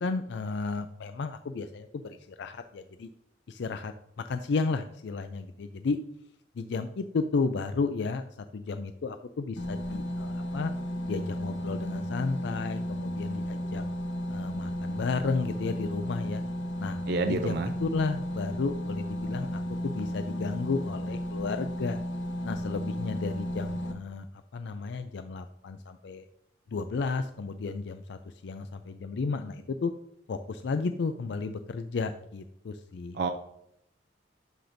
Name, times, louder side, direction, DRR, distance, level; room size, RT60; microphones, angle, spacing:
voice 1, 0.0-3.1 3.5-3.9 4.3-6.0 6.6-8.2 8.5-10.7 11.1-13.8 14.3-16.4 16.8-17.0 17.3-22.0 22.4-24.3 24.5-26.2 26.7-29.9 30.3-33.2, left 4 dB, 65° left, 9 dB, 0.4 m, -33 dB
sound 1, 9.6-23.9, equal, 80° left, 1.1 m, -34 dB
voice 2, 17.1-17.7 33.1-33.3, right 4 dB, 60° right, 6 dB, 0.4 m, -28 dB
11.5 x 5.0 x 2.6 m, 0.78 s
head